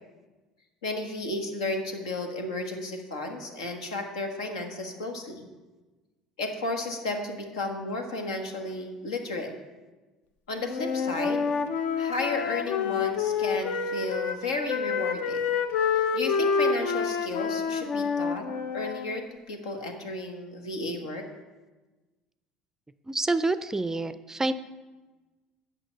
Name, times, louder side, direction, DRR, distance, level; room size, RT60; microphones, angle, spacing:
voice 1, 0.8-5.5 6.4-9.5 10.5-11.4 11.9-15.4 15.9-18.5 18.7-21.3, left 2 dB, 75° left, 4 dB, 1.2 m, -33 dB
Wind instrument woodwind instrument, 10.7-14.4 14.7-19.1, left 6 dB, 55° left, 0.7 m, -28 dB
voice 2, 23.1-24.5, right 2 dB, 15° right, 13 dB, 0.5 m, -27 dB
8.8 x 6.1 x 6.6 m, 1.2 s
figure-of-eight pair, 60°, 3 cm